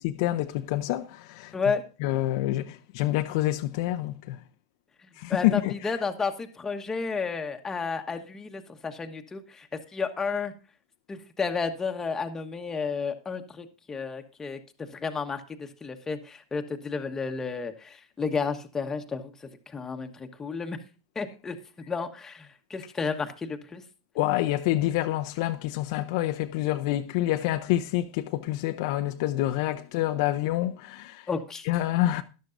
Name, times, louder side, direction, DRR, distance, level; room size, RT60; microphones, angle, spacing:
voice 1, 0.2-1.5 2.0-4.4 5.2-5.7 24.1-31.3 31.7-32.2, left 15 dB, 60° left, 0.7 m, -27 dB
voice 2, 5.3-10.5 11.1-19.3 19.7-20.8 21.1-21.6 21.9-23.8 31.3-31.7, left 5 dB, 15° left, 1.2 m, -32 dB
13.0 x 11.5 x 2.6 m
hypercardioid pair, 120°, 3 cm